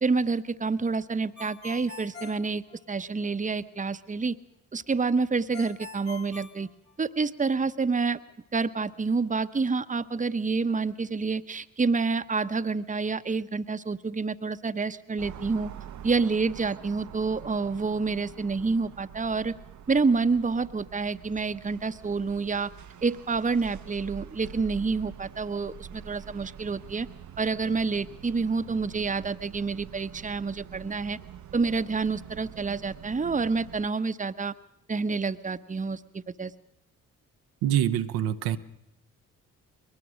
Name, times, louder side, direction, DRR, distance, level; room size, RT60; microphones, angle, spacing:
voice 1, 0.0-4.4 4.7-6.7 7.0-8.2 8.5-15.7 16.0-19.5 19.9-22.7 23.0-27.1 27.4-31.2 31.5-34.5 34.9-36.5, right 4 dB, 20° right, 0.9 m, -28 dB
Ringtone, 1.4-3.3 5.5-7.4, left 3 dB, 30° left, 2.0 m, -44 dB
sound 1, 15.2-33.9, right 9 dB, 50° right, 0.8 m, -46 dB
voice 2, 37.6-38.6, right 11 dB, 80° right, 0.8 m, -25 dB
22.0 x 19.5 x 6.3 m
hypercardioid pair, 45°, 36 cm